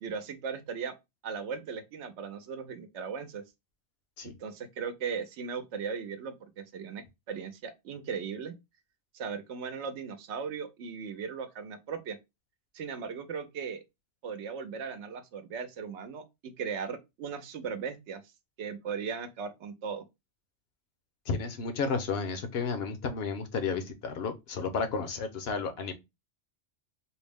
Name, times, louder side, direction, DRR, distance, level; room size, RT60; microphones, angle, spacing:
voice 1, 0.0-0.9 1.2-3.4 4.2-8.6 9.1-12.2 12.7-13.8 14.2-18.2 18.6-20.0, right 6 dB, 80° right, 0.9 m, -37 dB
voice 2, 21.3-25.9, left 5 dB, 65° left, 1.0 m, -32 dB
4.4 x 2.0 x 3.4 m
omnidirectional pair, 1.2 m